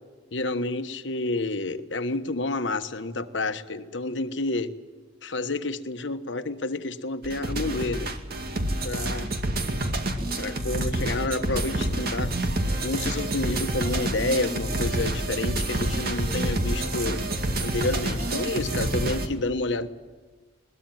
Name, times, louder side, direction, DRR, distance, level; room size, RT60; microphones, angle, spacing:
voice 1, 0.3-4.7 5.2-8.1 8.8-9.3 10.4-12.3 12.8-17.2 17.6-19.9, left 2 dB, 70° left, 10 dB, 1.2 m, -29 dB
sound 1, 7.2-19.3, right 1 dB, 55° right, 2.1 m, -28 dB
21.0 x 20.0 x 9.2 m, 1.4 s
head